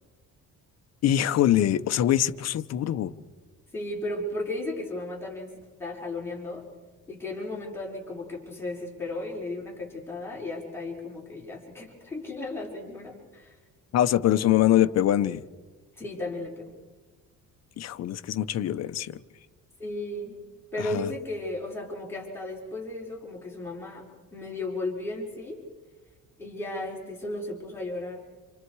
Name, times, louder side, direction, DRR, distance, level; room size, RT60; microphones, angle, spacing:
voice 1, 1.0-3.1 13.9-15.4 17.8-19.2 20.9-21.1, left 12 dB, 50° left, 1.0 m, -23 dB
voice 2, 3.7-5.5 5.8-6.6 7.1-13.6 15.9-16.7 19.8-20.4 20.7-24.0 24.3-25.6 26.4-28.2, left 2 dB, 5° left, 5.0 m, -35 dB
28.5 x 28.5 x 4.8 m
cardioid pair, 155°, 32 cm